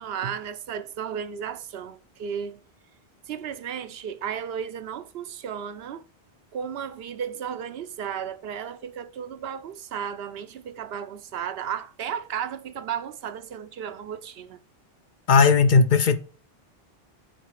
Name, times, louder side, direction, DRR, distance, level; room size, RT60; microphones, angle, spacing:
voice 1, 0.0-2.6 3.3-6.0 6.5-14.6, right 8 dB, 75° right, 0.8 m, -34 dB
voice 2, 15.3-16.2, left 5 dB, 55° left, 0.7 m, -17 dB
7.9 x 4.0 x 4.7 m
omnidirectional pair, 1.0 m